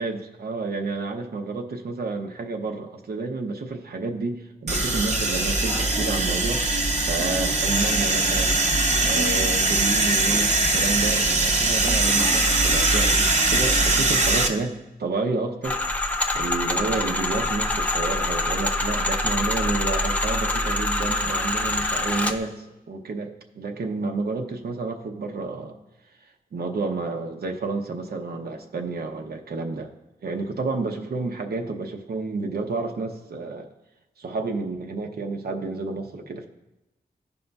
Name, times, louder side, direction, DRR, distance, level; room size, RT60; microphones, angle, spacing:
voice 1, 0.0-6.7 7.0-8.6 9.0-15.8 16.3-25.8 26.5-29.9 30.2-33.7 34.2-36.5, right 3 dB, 80° right, 3 dB, 0.8 m, -30 dB
sound 1, 4.7-14.5, right 2 dB, 45° right, 0.9 m, -21 dB
sound 2, 15.6-22.4, left 2 dB, 10° left, 0.5 m, -25 dB
15.5 x 5.3 x 2.3 m, 0.98 s
wide cardioid pair, 160°, 16 cm